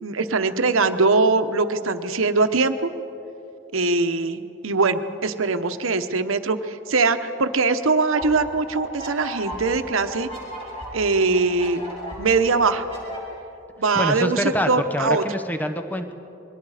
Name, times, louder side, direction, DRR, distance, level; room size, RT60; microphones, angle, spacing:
voice 1, 0.0-2.9 3.7-10.3 10.9-11.8 12.2-12.8 13.8-15.2, right 3 dB, 85° right, 9 dB, 1.0 m, -22 dB
sound 1, 8.0-13.2, equal, 30° left, 5.7 m, -36 dB
voice 2, 13.9-16.1, left 1 dB, 10° left, 6 dB, 0.8 m, -25 dB
28.0 x 22.0 x 5.0 m, 2.8 s
head